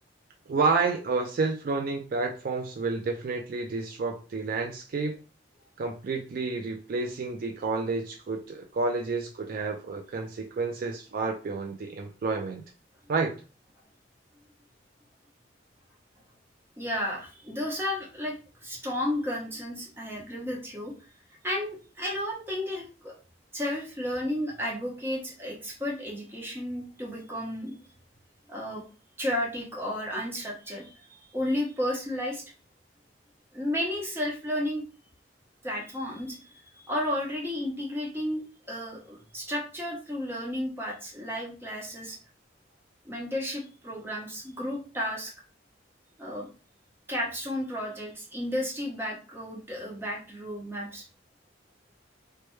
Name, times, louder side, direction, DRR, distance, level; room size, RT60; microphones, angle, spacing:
voice 1, 0.5-5.2 5.8-12.6 13.1-13.4, right 4 dB, 50° right, 3 dB, 0.4 m, -30 dB
voice 2, 16.8-18.4 18.6-20.9 21.4-23.2 23.5-27.7 28.5-28.8 29.2-32.4 33.5-34.8 35.6-42.2 43.0-45.3 46.2-46.5 47.1-51.0, left 1 dB, 15° right, -2 dB, 0.9 m, -33 dB
3.1 x 2.2 x 3.1 m, 0.36 s
head